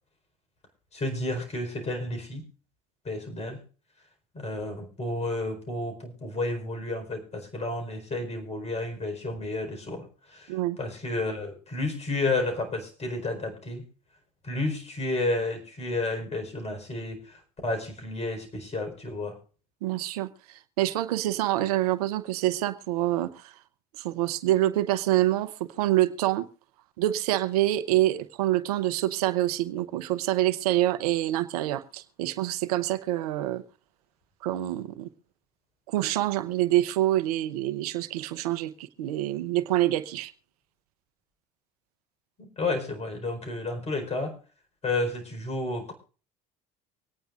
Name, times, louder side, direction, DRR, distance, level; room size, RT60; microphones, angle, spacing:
voice 1, 0.9-2.4 3.0-3.6 4.3-13.8 14.4-19.4 42.4-44.4 44.8-45.9, left 2 dB, 35° left, 5 dB, 4.6 m, -31 dB
voice 2, 19.8-23.5 24.0-26.5 27.0-33.6 34.4-35.1 35.9-40.3, right 15 dB, 80° right, 13 dB, 0.8 m, -26 dB
24.5 x 9.3 x 2.5 m, 0.36 s
hypercardioid pair, 80°, 19 cm